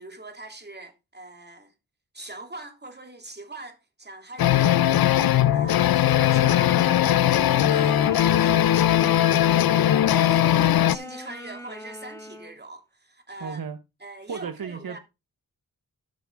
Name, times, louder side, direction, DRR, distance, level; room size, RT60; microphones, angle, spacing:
voice 1, 0.0-1.7 2.1-6.9 7.3-9.3 9.9-13.6 14.0-15.0, right 2 dB, 25° right, 2.8 m, -42 dB
sound 1, 4.4-10.9, left 12 dB, 75° left, 0.5 m, -19 dB
sound 2, 6.0-12.6, left 1 dB, 10° left, 1.9 m, -38 dB
voice 2, 13.4-13.8 14.3-15.0, right 6 dB, 70° right, 1.0 m, -34 dB
13.0 x 5.9 x 3.5 m
cardioid pair, 45°, 37 cm